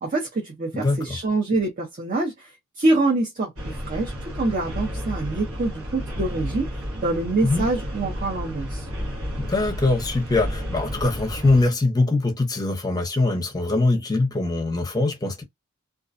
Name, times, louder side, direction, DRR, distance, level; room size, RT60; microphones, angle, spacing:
voice 1, 0.0-2.5 2.8-6.7 7.0-8.9, right 2 dB, 40° right, 0.7 m, -25 dB
voice 2, 0.7-1.2 7.4-7.7 9.4-15.4, left 2 dB, 20° left, 0.7 m, -22 dB
sound 1, 3.6-11.6, equal, 75° right, 1.0 m, -32 dB
2.4 x 2.2 x 2.5 m
head